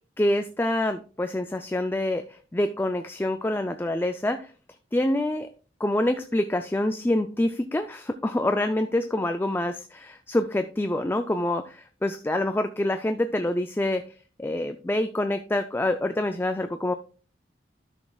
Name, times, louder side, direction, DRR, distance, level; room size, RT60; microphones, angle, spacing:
voice 1, 0.2-4.5 4.9-5.5 5.8-14.1 14.4-16.9, left 1 dB, 10° left, 8 dB, 0.3 m, -26 dB
13.0 x 6.2 x 2.3 m, 0.38 s
head